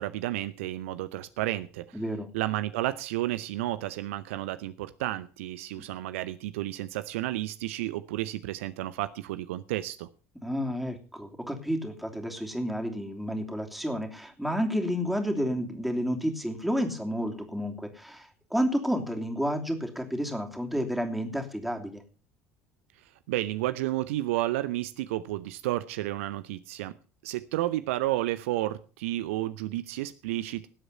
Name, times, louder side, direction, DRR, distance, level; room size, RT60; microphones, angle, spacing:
voice 1, 0.0-2.0 2.3-10.1 23.3-26.9 27.2-30.7, right 16 dB, 65° right, 13 dB, 0.6 m, -31 dB
voice 2, 1.9-2.3 10.4-22.0, equal, ahead, 3 dB, 3.0 m, -30 dB
18.5 x 7.9 x 5.6 m, 0.37 s
figure-of-eight pair, 60°, 8 cm